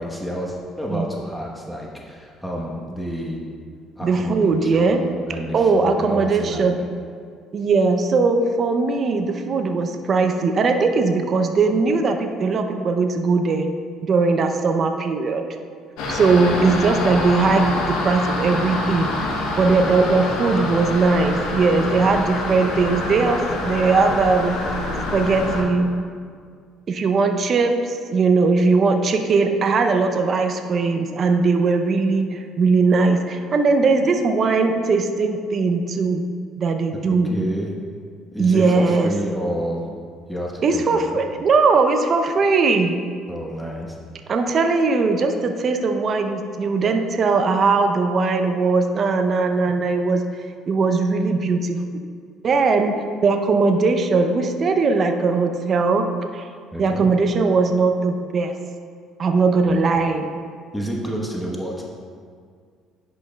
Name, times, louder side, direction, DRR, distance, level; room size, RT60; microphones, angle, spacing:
voice 1, 0.0-3.4 4.0-6.7 19.6-19.9 37.1-37.7 38.3-39.9 40.3-41.2 43.3-44.0 56.7-57.1 59.6-59.8 60.7-61.8, equal, 5° left, -2 dB, 1.1 m, -30 dB
voice 2, 4.0-5.0 5.5-6.8 7.5-13.7 14.1-15.5 16.1-19.1 19.6-24.6 25.1-25.9 26.9-36.2 36.6-37.3 38.4-39.1 40.6-43.0 44.3-50.2 50.7-51.8 52.4-52.9 53.2-56.1 56.3-56.5 56.8-58.5 59.2-60.3, right 4 dB, 50° right, 5 dB, 0.6 m, -19 dB
sound 1, 16.0-25.6, left 2 dB, 75° left, 0.9 m, -26 dB
10.5 x 5.2 x 2.3 m, 2.1 s
hypercardioid pair, 65°, 0 cm